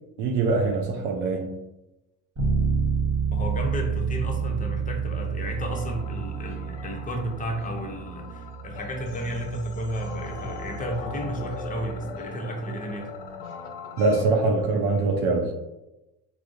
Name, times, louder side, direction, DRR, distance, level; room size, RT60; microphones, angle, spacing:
voice 1, 0.2-1.5 14.0-15.5, right 3 dB, 60° right, 0.5 m, -23 dB
Bass guitar, 2.4-12.1, right 5 dB, 35° right, 0.9 m, -30 dB
voice 2, 3.3-13.1, equal, 20° left, 0.6 m, -32 dB
sound 1, 5.6-14.2, left 4 dB, 65° left, 0.6 m, -40 dB
3.4 x 2.0 x 2.5 m
hypercardioid pair, 65°, 45 cm